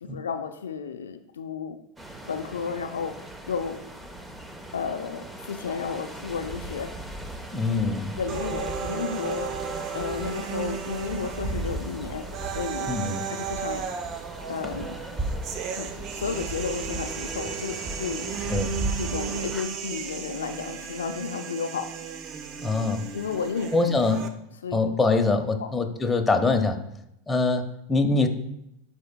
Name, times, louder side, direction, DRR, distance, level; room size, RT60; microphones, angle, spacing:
voice 1, 0.0-1.8 2.3-3.1 3.5-3.8 4.7-6.9 8.2-9.5 9.9-12.3 12.5-12.9 13.3-13.8 14.5-15.0 15.7-18.3 19.0-21.9 23.1-23.8 24.6-24.8 25.6-25.7, left 6 dB, 90° left, 7 dB, 0.5 m, -32 dB
sound 1, 2.0-19.6, right 1 dB, 10° right, 0.9 m, -37 dB
voice 2, 7.5-8.1 12.9-13.2 18.5-18.7 22.6-23.0 23.7-24.3 24.7-26.8 27.3-28.3, left 3 dB, 15° left, 4 dB, 0.9 m, -24 dB
sound 2, 8.3-24.3, right 7 dB, 50° right, 0.6 m, -35 dB
12.0 x 4.4 x 2.2 m, 0.80 s
hypercardioid pair, 100°, 0 cm